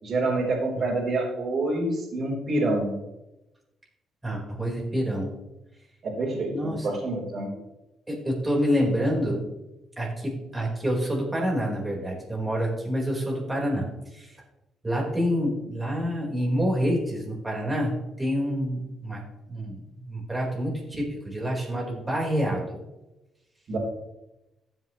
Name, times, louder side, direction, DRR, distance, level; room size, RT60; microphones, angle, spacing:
voice 1, 0.0-2.9 6.0-7.5 23.7-23.8, right 2 dB, 55° right, -4 dB, 4.1 m, -27 dB
voice 2, 4.2-5.3 6.5-6.9 8.1-9.4 10.0-13.9 14.1-14.4 14.8-19.2 19.5-22.8, equal, 15° right, -2 dB, 4.5 m, -27 dB
15.0 x 7.9 x 3.2 m, 0.95 s
cardioid pair, 90°, 0 cm